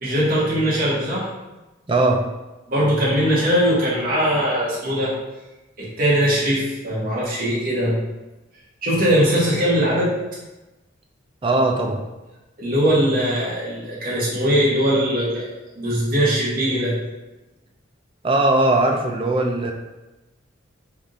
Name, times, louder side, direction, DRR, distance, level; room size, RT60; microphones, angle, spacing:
voice 1, 0.0-1.3 2.7-5.1 5.8-7.9 8.8-10.2 12.6-15.5 15.7-16.9, equal, 45° right, -7 dB, 1.2 m, -20 dB
voice 2, 1.9-2.3 11.4-12.0 18.2-19.7, right 2 dB, 25° right, 2 dB, 0.4 m, -19 dB
3.5 x 2.5 x 3.9 m, 1.0 s
head